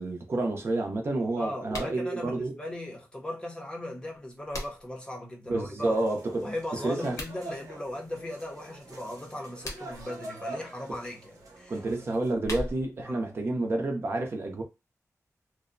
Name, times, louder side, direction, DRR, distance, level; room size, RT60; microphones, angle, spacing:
voice 1, 0.0-2.5 5.5-6.4 6.8-7.2 11.7-14.6, right 2 dB, 45° right, 0.6 m, -29 dB
voice 2, 1.4-6.0 6.4-11.8 13.1-13.3, left 1 dB, 15° left, 0.6 m, -38 dB
sound 1, 1.6-2.0 4.0-5.0 7.0-7.4 9.4-10.1 12.1-13.0, left 1 dB, 70° left, 0.9 m, -39 dB
sound 2, 5.8-12.3, right 2 dB, 80° right, 0.8 m, -45 dB
2.6 x 2.0 x 2.5 m
wide cardioid pair, 160°, 6 cm